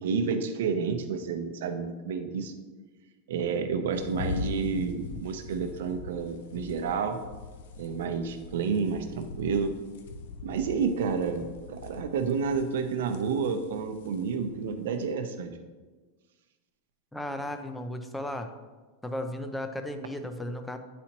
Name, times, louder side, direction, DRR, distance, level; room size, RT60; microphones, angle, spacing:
voice 1, 0.0-2.5 3.3-7.2 7.8-9.8 10.4-15.5, right 5 dB, 75° right, 7 dB, 0.7 m, -30 dB
sound 1, 3.9-15.1, left 4 dB, 75° left, 0.6 m, -42 dB
voice 2, 17.1-18.5 19.0-20.8, left 1 dB, 5° left, 7 dB, 0.4 m, -35 dB
8.9 x 4.2 x 2.9 m, 1.3 s
supercardioid pair, 155°, 0 cm